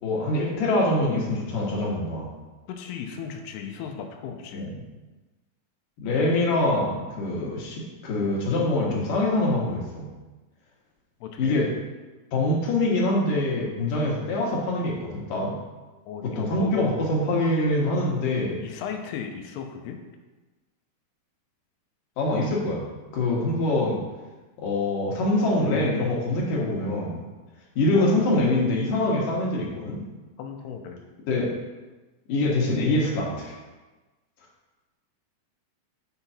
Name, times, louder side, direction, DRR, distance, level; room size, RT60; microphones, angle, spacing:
voice 1, 0.0-2.3 4.5-4.7 6.0-10.1 11.4-11.7 12.3-15.5 16.2-18.6 22.2-22.8 23.1-24.0 24.6-27.2 27.8-30.0 31.3-31.5 32.3-33.6, left 2 dB, 60° left, -3 dB, 2.8 m, -24 dB
voice 2, 2.7-4.7 11.2-11.6 16.1-16.7 18.6-20.0 27.9-28.2 30.4-31.0, left 7 dB, 85° left, 3 dB, 2.7 m, -36 dB
9.2 x 5.6 x 4.3 m, 1.2 s
omnidirectional pair, 4.8 m